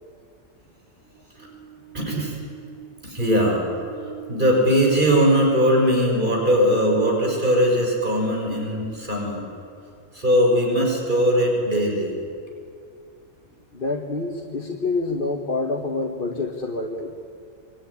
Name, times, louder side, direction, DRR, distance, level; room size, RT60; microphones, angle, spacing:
voice 1, 1.2-9.4 10.1-12.1, equal, 40° right, 0 dB, 6.2 m, -21 dB
voice 2, 13.7-17.1, left 3 dB, 40° left, 1 dB, 1.8 m, -27 dB
27.0 x 22.5 x 9.9 m, 2.4 s
omnidirectional pair, 1.4 m